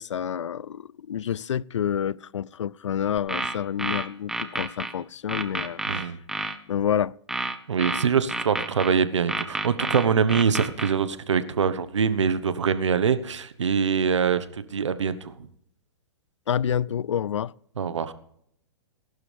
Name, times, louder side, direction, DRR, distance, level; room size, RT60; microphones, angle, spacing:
voice 1, 0.0-6.1 6.7-7.2 16.5-17.5, left 9 dB, 85° left, 0.4 m, -28 dB
sound 1, 3.2-4.9 5.3-6.6 7.3-8.9 9.3-10.9, right 2 dB, 5° right, 0.9 m, -29 dB
voice 2, 5.8-6.2 7.7-15.5 17.8-18.1, right 6 dB, 85° right, 1.2 m, -24 dB
20.0 x 12.0 x 3.4 m
hypercardioid pair, 130°, 15 cm